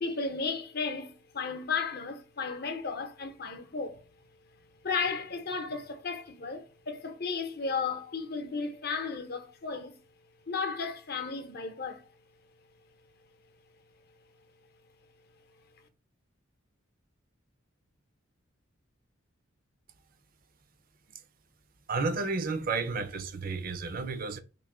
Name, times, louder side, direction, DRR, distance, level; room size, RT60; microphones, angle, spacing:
voice 1, 0.0-4.0 4.8-10.0 10.5-12.0, left 5 dB, 50° left, 0.8 m, -34 dB
voice 2, 21.9-24.4, right 4 dB, 45° right, 0.5 m, -32 dB
3.1 x 2.7 x 3.7 m
head